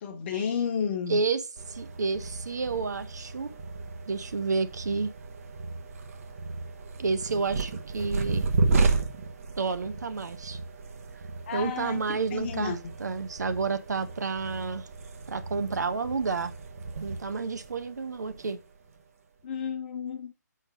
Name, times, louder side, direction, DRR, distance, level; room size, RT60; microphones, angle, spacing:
voice 1, 0.0-1.2 11.5-12.0 12.3-12.8 19.4-20.3, left 7 dB, 40° left, 1.3 m, -31 dB
voice 2, 1.1-3.5 4.1-5.1 7.0-8.4 9.6-10.6 11.5-14.9 15.3-16.5 17.0-18.6, right 4 dB, 70° right, 1.0 m, -30 dB
sound 1, 1.6-19.0, right 3 dB, 50° right, 1.2 m, -33 dB
7.4 x 4.4 x 5.1 m
figure-of-eight pair, 140°, 10 cm